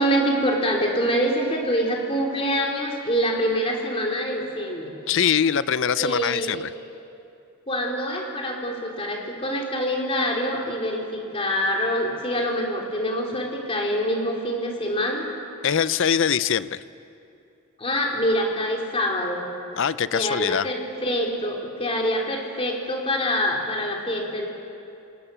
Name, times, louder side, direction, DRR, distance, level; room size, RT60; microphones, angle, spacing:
voice 1, 0.0-4.9 6.0-6.6 7.7-15.3 17.8-19.4 20.1-24.5, equal, 25° left, 0 dB, 3.2 m, -25 dB
voice 2, 5.1-6.7 15.6-16.8 19.8-20.7, left 8 dB, 55° left, 16 dB, 0.5 m, -23 dB
27.0 x 20.0 x 6.8 m, 2.6 s
head